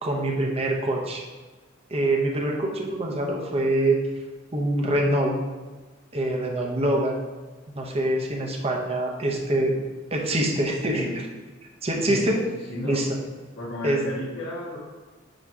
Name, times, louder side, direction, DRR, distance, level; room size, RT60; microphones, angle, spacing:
voice 1, 0.0-1.2 1.9-4.0 4.5-5.3 6.1-7.2 7.7-9.7 10.1-11.1 11.8-12.4 12.8-13.1 13.8-14.0, right 1 dB, 30° right, 1 dB, 1.0 m, -24 dB
voice 2, 10.8-11.2 12.1-12.3 12.7-13.0 13.6-14.8, left 1 dB, 65° left, -8 dB, 1.5 m, -33 dB
9.1 x 3.1 x 4.8 m, 1.3 s
head